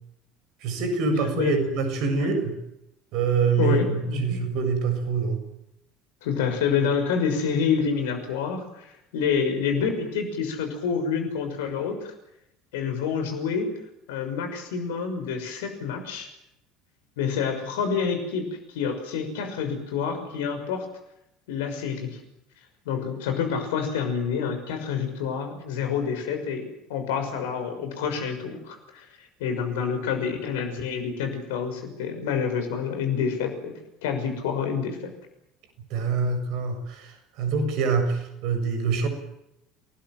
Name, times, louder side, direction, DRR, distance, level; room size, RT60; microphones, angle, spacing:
voice 1, 0.6-2.5 3.1-5.4 35.9-39.1, right 5 dB, 55° right, 8 dB, 7.2 m, -25 dB
voice 2, 3.6-4.4 6.2-12.1 12.7-13.7 14.1-16.3 17.2-20.9 21.5-22.2 22.8-26.6 26.9-33.7 34.0-35.1, left 6 dB, 65° left, 7 dB, 6.2 m, -28 dB
28.5 x 20.0 x 7.6 m, 0.82 s
figure-of-eight pair, 65°, 0 cm